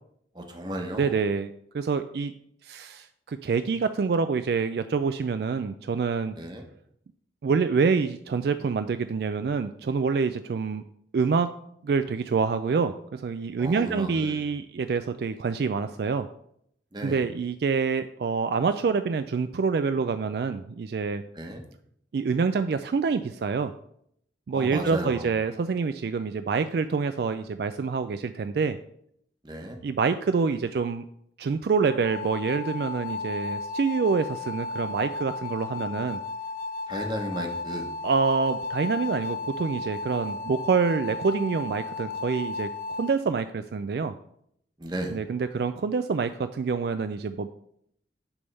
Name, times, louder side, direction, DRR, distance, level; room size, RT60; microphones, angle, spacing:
voice 1, 0.3-1.1 6.4-6.6 13.6-14.4 16.9-17.2 21.3-21.6 24.5-25.3 29.4-29.8 35.7-36.0 36.9-37.9 44.8-45.2, right 1 dB, 25° right, 3 dB, 1.0 m, -34 dB
voice 2, 1.0-2.3 2.6-6.3 7.4-10.8 11.1-11.5 11.8-16.3 17.0-21.2 22.1-23.7 24.5-28.8 29.8-31.0 31.4-36.2 38.0-42.7 43.0-44.2 45.1-47.5, right 5 dB, 60° right, 10 dB, 0.3 m, -26 dB
sound 1, 31.9-43.1, left 4 dB, 50° left, 0.3 m, -34 dB
9.9 x 3.5 x 5.4 m, 0.71 s
head